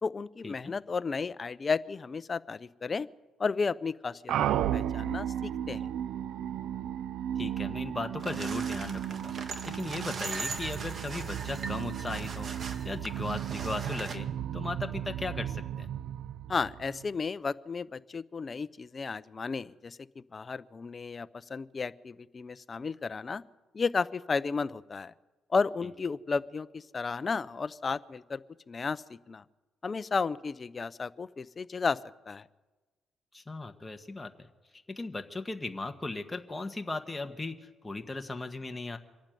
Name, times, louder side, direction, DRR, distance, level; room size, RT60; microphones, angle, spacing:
voice 1, 0.0-3.1 3.4-5.9 16.5-23.4 23.7-25.1 25.5-28.4 28.7-29.4 29.8-32.0 32.3-32.5, left 4 dB, 35° left, 15 dB, 0.6 m, -33 dB
sound 1, 4.3-17.1, right 10 dB, 80° right, 0.5 m, -34 dB
voice 2, 7.4-9.4 9.6-14.3 14.5-15.9 33.3-34.5 34.9-39.0, left 2 dB, 15° left, 6 dB, 1.4 m, -37 dB
sound 2, 8.2-14.2, right 4 dB, 50° right, 1.9 m, -40 dB
25.0 x 11.5 x 9.2 m, 1.3 s
cardioid pair, 90°, 0 cm